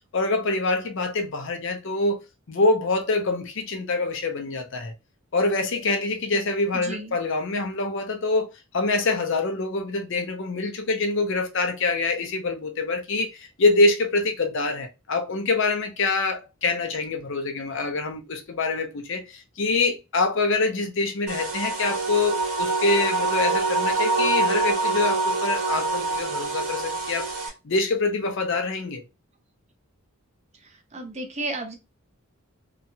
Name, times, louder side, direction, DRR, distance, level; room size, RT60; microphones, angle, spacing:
voice 1, 0.1-2.2 2.5-4.9 5.3-29.0, left 3 dB, 60° left, 0.6 m, -25 dB
voice 2, 6.7-7.1 30.6-31.8, right 2 dB, 30° right, 0.6 m, -33 dB
sound 1, 21.3-27.5, right 3 dB, 85° right, 1.3 m, -25 dB
2.9 x 2.3 x 2.7 m
head